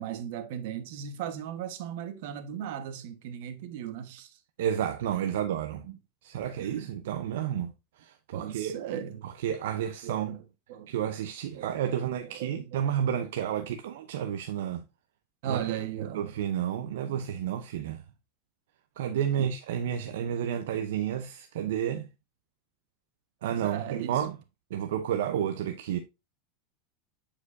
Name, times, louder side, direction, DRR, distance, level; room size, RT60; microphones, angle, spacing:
voice 1, 0.0-4.4 5.3-5.5 5.8-6.0 6.6-7.1 8.3-9.3 10.0-10.4 10.7-10.9 11.5-11.7 12.2-12.8 15.4-16.2 19.4-19.5 23.5-24.2, right 9 dB, 65° right, 1.2 m, -37 dB
voice 2, 4.6-5.9 6.2-7.7 8.0-8.8 9.2-10.4 10.9-14.8 15.5-15.6 16.1-18.0 19.0-22.1 23.4-24.4 24.7-26.0, right 9 dB, 85° right, 0.7 m, -31 dB
8.5 x 4.9 x 2.6 m
supercardioid pair, 145°, 0 cm